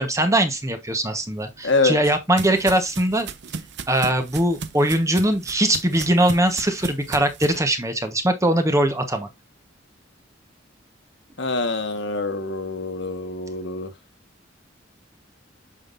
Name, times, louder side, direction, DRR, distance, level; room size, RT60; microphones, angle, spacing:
voice 1, 0.0-3.3 3.9-9.3, right 1 dB, 15° right, 1.2 m, -21 dB
sound 1, 1.5-7.6, right 5 dB, 65° right, 0.7 m, -36 dB
voice 2, 1.6-2.0 11.4-13.9, left 3 dB, 70° left, 1.5 m, -25 dB
8.6 x 5.9 x 2.6 m
head